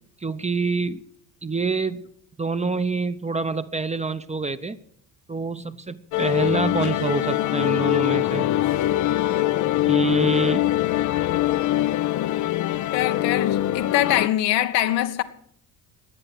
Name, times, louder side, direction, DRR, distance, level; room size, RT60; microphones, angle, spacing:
voice 1, 0.2-1.0 1.4-2.0 2.4-4.8 5.3-8.5 9.8-10.7, right 4 dB, 15° right, 0.7 m, -26 dB
sound 1, 6.1-14.3, left 14 dB, 40° left, 0.5 m, -23 dB
voice 2, 12.9-15.2, left 12 dB, 75° left, 1.2 m, -23 dB
21.0 x 8.8 x 6.1 m
hypercardioid pair, 60°, 50 cm